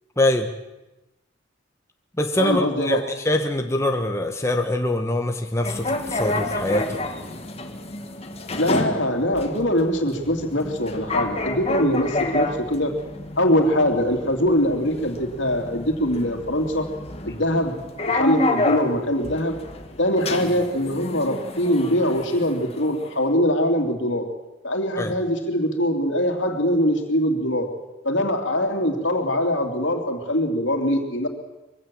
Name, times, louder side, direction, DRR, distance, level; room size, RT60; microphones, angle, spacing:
voice 1, 0.2-0.5 2.2-7.0 25.0-25.1, left 1 dB, 15° left, 4 dB, 1.1 m, -23 dB
voice 2, 2.4-3.0 8.6-12.9 13.4-16.9 17.2-17.7 18.1-19.6 20.0-24.3 24.6-27.7 28.0-31.3, equal, 70° left, 4 dB, 2.8 m, -22 dB
sound 1, 5.6-23.2, left 2 dB, 30° left, 1.7 m, -29 dB
23.0 x 16.0 x 7.6 m, 1.0 s
head